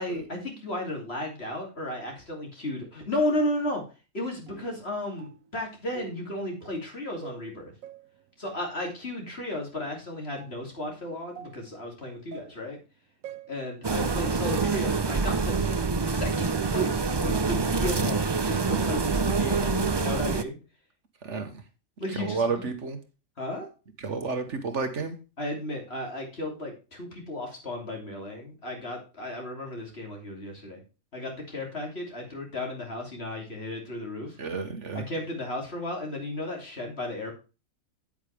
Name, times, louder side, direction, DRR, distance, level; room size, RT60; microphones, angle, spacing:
voice 1, 0.0-3.8 4.1-7.7 8.4-12.8 13.5-15.5 16.0-20.6 22.0-22.7 23.4-23.7 25.4-30.8 31.1-34.4 34.9-37.3, left 1 dB, 50° left, 1 dB, 3.2 m, -34 dB
sound 1, 4.5-4.8 5.2-5.6 5.9-6.3 6.6-6.9 7.2-8.2 9.3-9.5 10.4-10.6 11.4-11.7 12.3-12.6 13.2-13.7 14.5-15.0 15.6-16.0 16.7-16.9, right 10 dB, 80° right, 1.1 m, -41 dB
sound 2, 13.8-20.4, right 4 dB, 40° right, 0.4 m, -26 dB
voice 2, 21.2-21.6 22.1-23.0 24.0-25.2 34.4-35.1, right 4 dB, 60° right, 7 dB, 1.5 m, -31 dB
9.0 x 8.7 x 3.4 m, 0.31 s
omnidirectional pair, 1.4 m